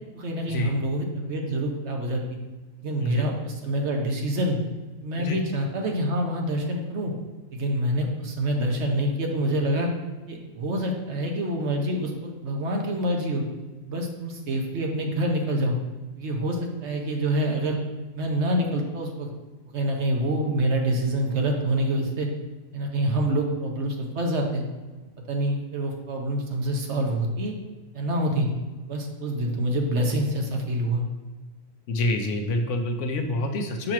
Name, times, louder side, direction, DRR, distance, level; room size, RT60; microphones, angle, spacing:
voice 1, 0.1-2.4 2.8-4.6 5.0-7.1 7.5-9.9 10.3-13.4 13.9-15.8 16.2-17.8 18.1-19.3 19.7-22.3 22.7-24.6 25.3-27.5 27.9-28.5 28.9-31.0, right 1 dB, 60° right, 1 dB, 1.1 m, -26 dB
voice 2, 31.9-33.9, left 1 dB, 70° left, 5 dB, 1.0 m, -27 dB
6.5 x 3.0 x 5.8 m, 1.3 s
omnidirectional pair, 1.4 m